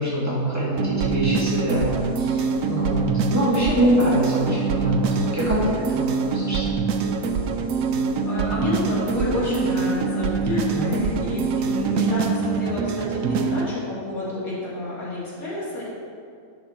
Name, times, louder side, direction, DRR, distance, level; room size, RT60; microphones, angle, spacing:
voice 1, 0.0-1.9 2.2-6.6 10.7-11.0, equal, 10° right, -8 dB, 1.8 m, -24 dB
sound 1, 0.8-13.7, right 5 dB, 75° right, 1.0 m, -25 dB
voice 2, 8.3-15.9, left 1 dB, 85° left, -8 dB, 2.8 m, -29 dB
7.9 x 6.1 x 4.3 m, 2.3 s
omnidirectional pair, 1.5 m